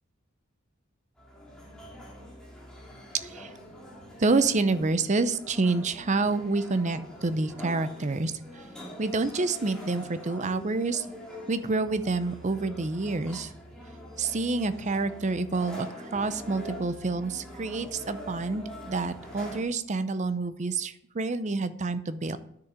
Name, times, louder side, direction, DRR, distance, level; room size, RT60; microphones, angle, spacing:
sound 1, 1.2-19.6, equal, 5° left, 2.3 m, -44 dB
voice 1, 4.2-8.6 9.0-11.1 11.5-13.5 14.2-15.9 16.1-22.4, right 3 dB, 35° right, 12 dB, 0.6 m, -28 dB
9.9 x 6.7 x 5.0 m, 0.74 s
head